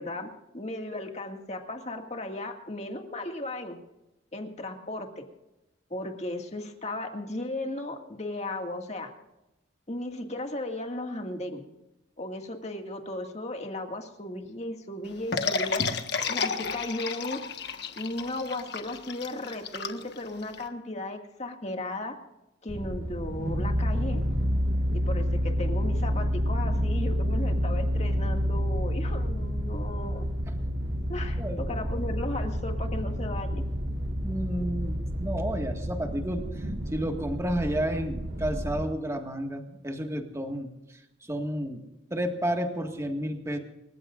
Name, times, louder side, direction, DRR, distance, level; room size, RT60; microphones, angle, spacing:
voice 1, 0.0-3.8 4.3-5.3 5.9-9.1 9.9-11.6 12.2-15.8 16.3-17.4 18.0-22.1 22.6-24.2 25.1-30.3 31.1-33.6, left 1 dB, 35° left, 3 dB, 2.1 m, -35 dB
sound 1, 15.3-20.6, left 5 dB, 55° left, 1.5 m, -31 dB
sound 2, 22.7-38.9, equal, 55° right, 1.8 m, -29 dB
voice 2, 34.2-36.7 36.9-40.7 41.2-41.8 42.1-43.6, equal, 15° right, 3 dB, 1.8 m, -31 dB
29.0 x 15.5 x 2.6 m, 0.95 s
head